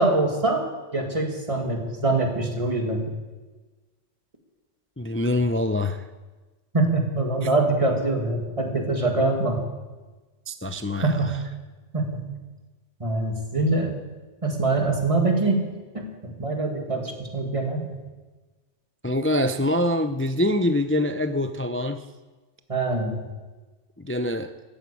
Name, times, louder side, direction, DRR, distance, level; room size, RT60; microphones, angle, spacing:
voice 1, 0.0-3.1 6.7-9.6 11.0-11.3 11.9-12.3 13.0-13.9 14.4-15.6 15.9-17.8 22.7-23.2, right 2 dB, 25° right, 2 dB, 2.2 m, -24 dB
voice 2, 5.0-6.0 10.5-11.4 19.0-22.0 24.0-24.5, left 1 dB, 20° left, 9 dB, 0.4 m, -25 dB
14.5 x 8.9 x 8.6 m, 1.2 s
omnidirectional pair, 1.3 m